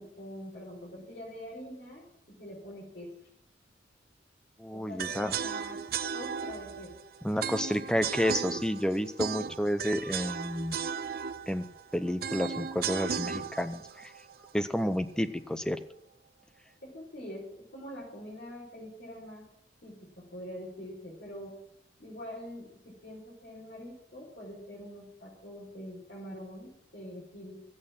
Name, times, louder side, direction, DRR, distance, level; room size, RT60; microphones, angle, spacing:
voice 1, 0.0-3.1 4.7-5.8 6.1-6.9 16.8-19.4 19.8-21.6 22.0-27.6, equal, 65° left, -6 dB, 5.0 m, -44 dB
voice 2, 4.6-5.3 7.2-10.8 11.5-11.6 11.9-14.1 14.5-15.8, equal, 5° left, 9 dB, 0.7 m, -30 dB
sound 1, 5.0-15.1, right 7 dB, 55° right, 0.5 m, -36 dB
13.5 x 8.8 x 7.3 m, 0.72 s
head